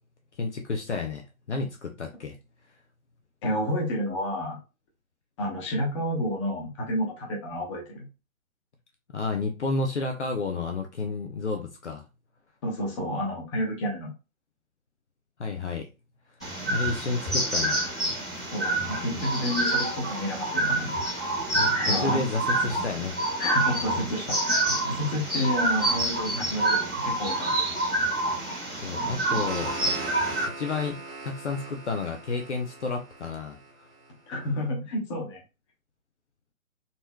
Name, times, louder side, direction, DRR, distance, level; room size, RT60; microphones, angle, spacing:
voice 1, 0.4-2.4 9.1-12.0 15.4-15.9 16.7-17.8 21.5-23.2 28.8-29.7 30.4-33.9, left 3 dB, 55° left, 3 dB, 0.8 m, -31 dB
voice 2, 3.4-4.6 5.4-8.1 12.6-14.1 18.5-20.9 21.8-22.2 23.4-27.6 34.3-35.4, left 1 dB, 20° left, -1 dB, 1.1 m, -30 dB
sound 1, 16.4-30.4, right 2 dB, 5° left, 0.5 m, -27 dB
sound 2, 29.1-34.1, right 3 dB, 45° right, 1.3 m, -40 dB
4.1 x 3.0 x 2.3 m, 0.28 s
figure-of-eight pair, 135°, 42 cm